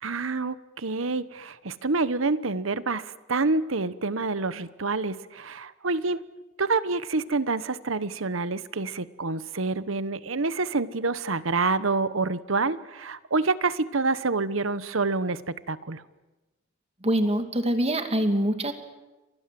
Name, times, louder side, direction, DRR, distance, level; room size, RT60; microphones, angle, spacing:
voice 1, 0.0-6.2 6.6-16.0, right 3 dB, 80° right, 15 dB, 1.1 m, -27 dB
voice 2, 17.0-18.7, right 1 dB, 30° right, 7 dB, 2.4 m, -24 dB
29.5 x 25.5 x 7.8 m, 1.1 s
head